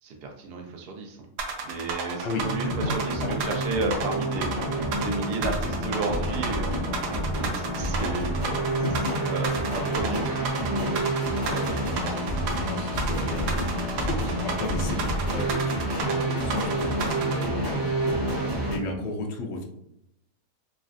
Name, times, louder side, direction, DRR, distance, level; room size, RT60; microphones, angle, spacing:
voice 1, 0.0-1.3 1.6-8.6 9.3-11.9, right 3 dB, 70° right, 2 dB, 0.5 m, -33 dB
sound 1, 1.4-17.5, right 5 dB, 85° right, 1.2 m, -32 dB
sound 2, 2.3-18.8, right 1 dB, 35° right, 1.0 m, -28 dB
voice 2, 8.7-9.2 12.6-13.6 13.9-19.6, left 2 dB, 80° left, 2 dB, 0.6 m, -34 dB
3.2 x 2.3 x 2.5 m, 0.80 s
omnidirectional pair, 1.7 m